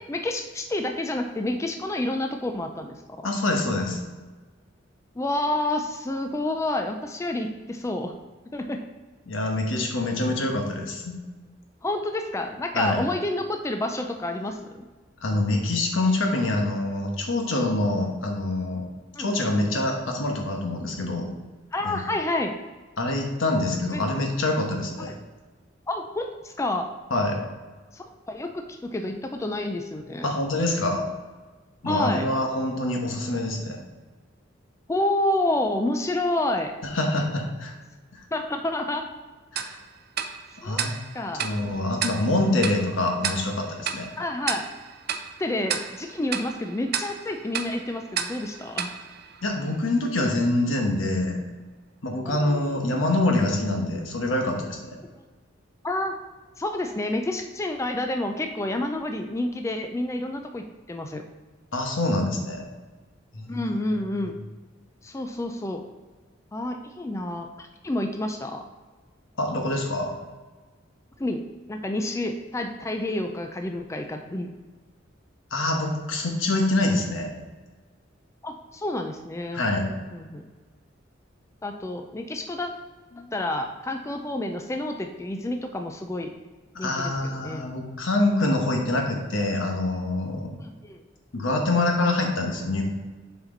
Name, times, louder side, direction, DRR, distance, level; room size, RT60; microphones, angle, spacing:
voice 1, 0.0-3.3 5.2-8.1 8.5-8.8 11.8-14.9 19.1-19.3 21.7-22.6 23.9-24.1 25.0-25.2 25.9-26.9 27.9-30.4 31.8-32.3 34.9-36.7 38.3-39.0 40.6-40.9 41.1-41.5 44.2-44.6 45.4-48.9 52.3-52.8 55.8-56.2 56.6-61.2 63.5-64.3 65.0-65.8 66.5-68.6 71.2-71.4 71.7-74.5 78.4-80.4 81.6-82.7 83.3-86.3 86.8-87.6 90.6-91.0, left 1 dB, 15° left, 5 dB, 0.4 m, -29 dB
voice 2, 3.2-4.0 9.3-11.2 12.7-13.0 15.2-18.8 19.2-21.3 21.8-22.0 23.0-25.1 27.1-27.4 30.2-31.0 31.8-33.8 36.8-37.7 38.1-38.2 39.5-39.8 40.6-41.0 41.4-44.1 49.4-51.4 52.0-55.0 61.7-62.6 63.3-63.6 69.4-70.1 75.5-77.3 79.5-79.9 83.1-83.3 86.7-90.5 91.3-92.8, left 2 dB, 80° left, 2 dB, 1.2 m, -25 dB
Tick-tock, 39.6-50.0, right 7 dB, 55° right, 0.5 m, -34 dB
7.0 x 4.4 x 3.8 m, 1.3 s
head